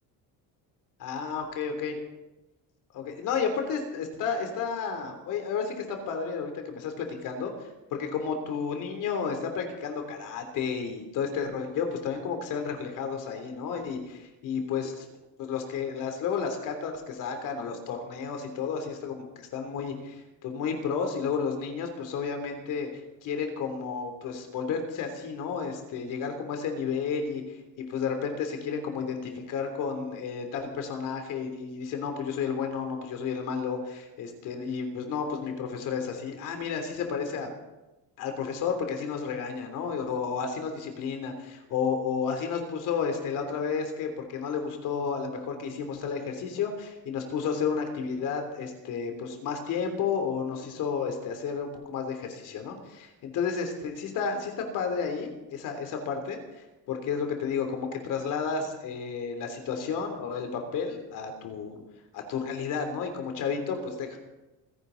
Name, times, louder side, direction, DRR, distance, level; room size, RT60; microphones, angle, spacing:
voice 1, 1.0-1.9 2.9-15.0 15.4-22.9 23.2-27.4 27.8-37.5 38.2-56.4 56.9-61.7 62.1-64.2, left 6 dB, 60° left, 5 dB, 3.3 m, -32 dB
26.5 x 11.0 x 4.0 m, 1.0 s
cardioid pair, 140°, 35 cm